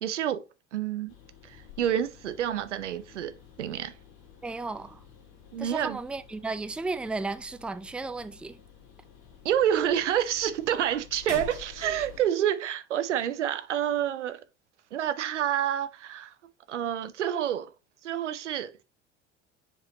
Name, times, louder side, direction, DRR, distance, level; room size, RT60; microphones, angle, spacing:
voice 1, 0.0-0.4 0.7-1.1 1.4-3.3 3.6-3.9 5.5-6.0 9.4-14.4 14.9-16.3 16.7-17.7 18.0-18.8, right 10 dB, 85° right, 0.7 m, -28 dB
sound 1, 1.1-12.2, left 7 dB, 65° left, 2.2 m, -49 dB
voice 2, 4.4-5.0 5.6-8.6, right 3 dB, 5° right, 0.4 m, -34 dB
7.0 x 4.9 x 2.8 m
hypercardioid pair, 65°, 35 cm